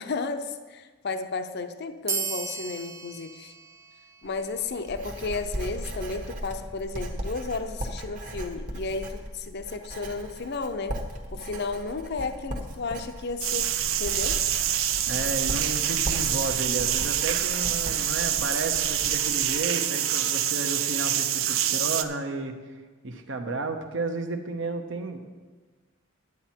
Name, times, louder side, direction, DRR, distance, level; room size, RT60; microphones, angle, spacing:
voice 1, 0.0-3.5 4.2-11.0 11.3-13.7 14.0-14.4, left 3 dB, 55° left, 9 dB, 0.6 m, -33 dB
sound 1, 2.1-5.1, right 5 dB, 15° right, 0.5 m, -36 dB
Writing, 4.2-19.6, equal, 40° right, 1.2 m, -37 dB
sound 2, 13.4-22.0, right 11 dB, 80° right, 0.5 m, -26 dB
voice 2, 15.1-22.5 23.0-25.3, right 3 dB, 65° right, 6 dB, 1.0 m, -32 dB
11.0 x 8.4 x 4.5 m, 1.4 s
head